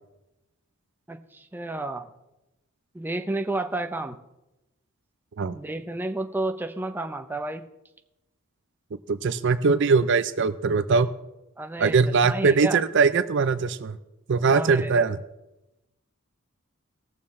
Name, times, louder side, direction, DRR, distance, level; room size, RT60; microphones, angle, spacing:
voice 1, 1.1-2.1 2.9-4.2 5.5-7.6 11.6-12.0 12.2-12.8 14.5-15.1, right 2 dB, 10° right, 6 dB, 0.6 m, -31 dB
voice 2, 9.1-11.1 11.8-14.0 14.3-15.2, right 4 dB, 60° right, 13 dB, 0.5 m, -21 dB
19.5 x 7.0 x 3.2 m, 0.96 s
head